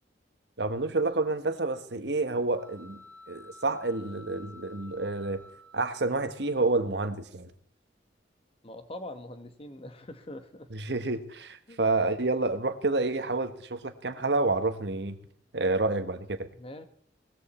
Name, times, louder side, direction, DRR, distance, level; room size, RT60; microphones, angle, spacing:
voice 1, 0.6-3.0 3.3-5.5 5.7-7.5 10.7-15.2 15.5-16.5, right 3 dB, 70° right, 10 dB, 1.3 m, -29 dB
sound 1, 2.5-6.6, left 2 dB, 20° right, 5.5 m, -52 dB
voice 2, 8.6-10.7 11.7-11.8 16.5-16.9, left 1 dB, 35° left, 9 dB, 1.4 m, -43 dB
19.0 x 14.0 x 4.3 m, 0.63 s
head